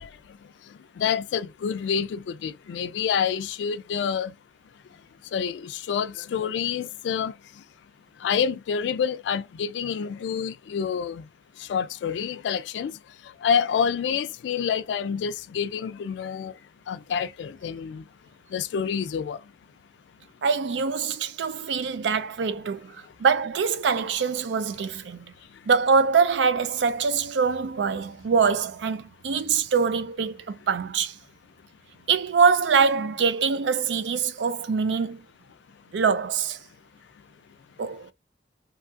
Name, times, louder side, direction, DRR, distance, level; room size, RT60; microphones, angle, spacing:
voice 1, 1.0-4.3 5.3-7.3 8.2-11.2 11.7-12.9 13.4-16.5 16.9-18.0 18.5-19.4, left 7 dB, 85° left, 0.3 m, -27 dB
voice 2, 20.4-25.2 25.7-31.2 32.1-35.2 35.9-36.6 37.8-38.1, right 5 dB, 85° right, 0.4 m, -24 dB
2.8 x 2.3 x 2.5 m
head